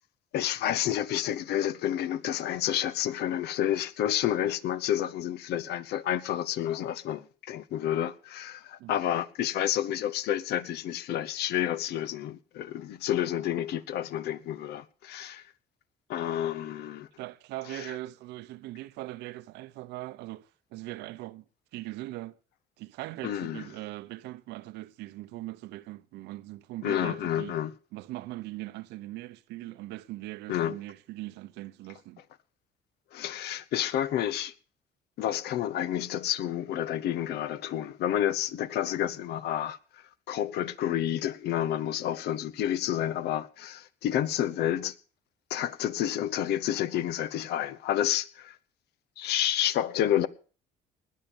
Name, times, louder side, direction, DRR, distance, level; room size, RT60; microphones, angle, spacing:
voice 1, 0.3-15.4 16.1-17.1 17.7-17.9 23.2-23.6 26.8-27.7 30.5-30.8 33.1-34.5 35.2-44.9 45.5-48.6 49.2-50.3, left 11 dB, 75° left, 1.0 m, -30 dB
voice 2, 17.2-21.4 21.7-22.4 22.8-27.6 27.9-32.2, right 17 dB, 85° right, 0.8 m, -40 dB
20.0 x 7.5 x 7.0 m
cardioid pair, 110°, 17 cm